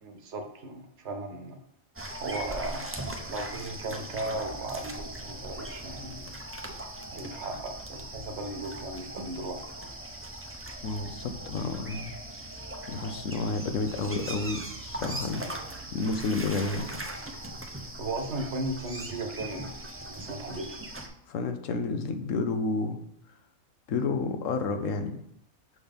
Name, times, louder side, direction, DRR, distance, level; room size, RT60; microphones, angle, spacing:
voice 1, 0.0-1.6 2.2-2.9 3.3-6.4 7.1-9.6 17.9-19.7 20.1-20.8, right 2 dB, 65° right, 5 dB, 1.1 m, -36 dB
sound 1, 2.0-21.1, right 1 dB, 20° right, 0.4 m, -39 dB
voice 2, 10.8-12.1 12.9-16.9 21.3-23.0 23.9-25.2, left 3 dB, 80° left, 7 dB, 1.1 m, -30 dB
6.2 x 3.7 x 5.1 m, 0.80 s
omnidirectional pair, 1.3 m